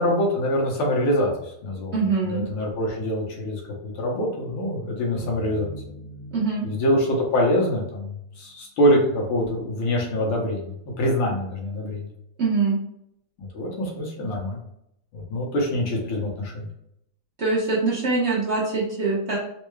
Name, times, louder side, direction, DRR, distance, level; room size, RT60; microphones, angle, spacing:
voice 1, 0.0-1.9 2.2-5.7 6.6-10.7 11.0-12.1 13.4-14.6 15.1-16.7, equal, 75° left, -2 dB, 1.9 m, -24 dB
voice 2, 1.9-2.5 6.3-6.7 12.4-12.8 17.4-19.4, right 4 dB, 80° right, -7 dB, 0.6 m, -23 dB
sound 1, 5.2-8.4, equal, 50° right, 1.1 m, -41 dB
4.3 x 2.2 x 3.1 m, 0.78 s
omnidirectional pair, 2.4 m